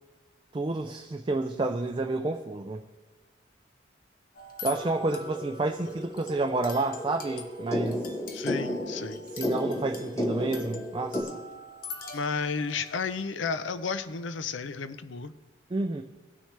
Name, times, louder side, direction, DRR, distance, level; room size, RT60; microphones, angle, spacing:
voice 1, 0.5-2.9 4.6-8.1 9.3-11.4 15.7-16.0, right 2 dB, 25° right, 5 dB, 0.4 m, -30 dB
sound 1, 4.3-13.2, left 3 dB, 45° left, 0.9 m, -44 dB
sound 2, 4.7-11.2, left 1 dB, 15° left, 0.9 m, -34 dB
voice 2, 8.3-9.2 12.1-15.3, left 5 dB, 80° left, 12 dB, 0.6 m, -32 dB
18.5 x 6.3 x 3.3 m, 1.4 s
head